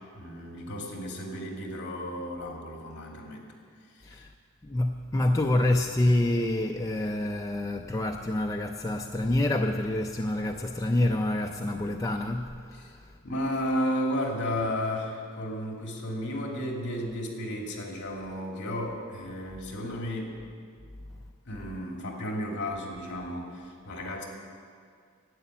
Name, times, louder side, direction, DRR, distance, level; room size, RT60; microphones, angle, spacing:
voice 1, 0.1-3.4 3.9-4.2 12.7-12.9 13.2-20.3 21.4-24.2, equal, 55° left, 2.5 m, -33 dB
voice 2, 4.6-13.0, left 1 dB, 15° left, 0.4 m, -27 dB
11.5 x 8.4 x 9.1 m
head